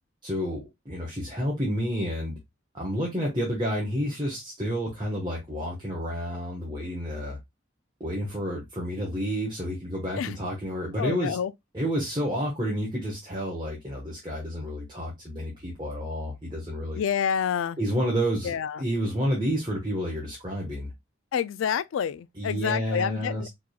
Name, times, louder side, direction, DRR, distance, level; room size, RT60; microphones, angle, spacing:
voice 1, 0.2-2.4 2.7-7.4 8.0-11.4 11.7-17.0 17.8-20.9 22.4-23.5, equal, 25° right, 1.3 m, -30 dB
voice 2, 11.0-11.5 17.0-17.8 18.4-18.8 21.3-23.5, left 7 dB, 90° left, 0.3 m, -28 dB
4.6 x 3.6 x 2.3 m
head